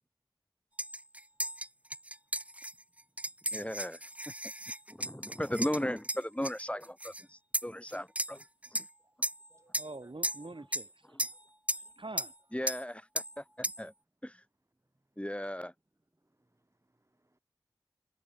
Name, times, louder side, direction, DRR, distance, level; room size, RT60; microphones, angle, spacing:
sound 1, 0.8-7.2 7.5-8.9 9.2-9.5 9.7-9.9 10.2-10.9 11.2-11.4 11.7-11.9 12.2-12.3 12.7-12.8 13.2-13.3 13.6-13.8, right 1 dB, 15° right, 2.0 m, -36 dB
voice 1, 3.5-4.0 4.9-8.4 8.7-8.9 12.5-13.9 14.2-14.4 15.2-15.7, equal, 15° left, 3.6 m, -36 dB
voice 2, 9.5-11.2 11.7-12.3, right 2 dB, 80° right, 7.8 m, -46 dB
voice 3, 16.2-17.4, right 1 dB, 35° right, 5.6 m, -69 dB
wide cardioid pair, 50°, 9 cm